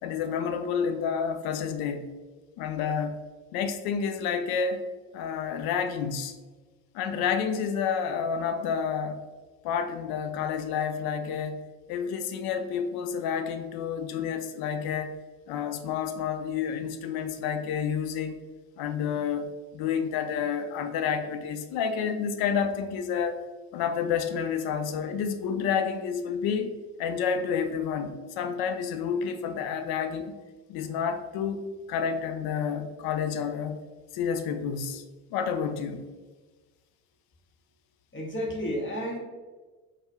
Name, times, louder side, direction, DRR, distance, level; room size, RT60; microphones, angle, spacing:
voice 1, 0.0-2.1 2.6-3.2 3.5-4.8 5.1-6.3 6.9-9.2 9.6-11.6 11.9-15.1 15.5-18.4 18.8-23.4 23.7-26.7 27.0-30.4 30.7-31.6 31.9-33.8 34.1-35.0 35.3-36.0, left 7 dB, 55° left, 8 dB, 0.5 m, -29 dB
voice 2, 38.1-39.2, equal, 25° left, -1 dB, 0.9 m, -31 dB
4.3 x 2.1 x 3.5 m, 1.3 s
figure-of-eight pair, 50°, 45 cm